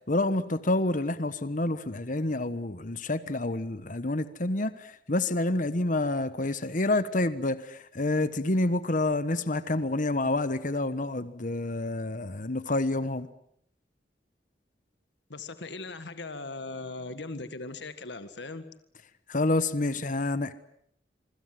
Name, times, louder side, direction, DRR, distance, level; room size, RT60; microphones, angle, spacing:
voice 1, 0.1-13.3 19.3-20.5, left 2 dB, 45° left, 1.3 m, -28 dB
voice 2, 15.3-18.7, left 3 dB, 75° left, 1.7 m, -39 dB
26.5 x 24.5 x 7.7 m
head